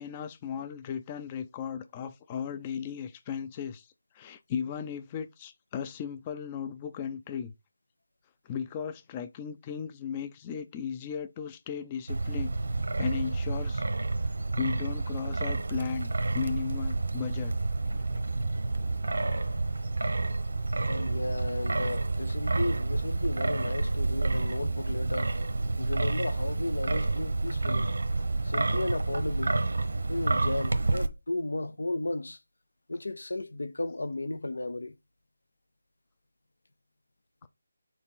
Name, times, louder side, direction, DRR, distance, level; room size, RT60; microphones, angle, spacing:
voice 1, 0.0-7.5 8.4-12.5 13.0-13.8 14.5-17.6 17.9-18.2, left 7 dB, 20° left, 0.4 m, -36 dB
Wind, 12.1-31.1, right 3 dB, 75° right, 0.9 m, -29 dB
voice 2, 20.8-25.3 25.8-27.9 28.4-29.6 30.1-32.4 32.9-34.9, left 2 dB, 80° left, 0.7 m, -34 dB
4.6 x 3.7 x 5.5 m
figure-of-eight pair, 165°, 0 cm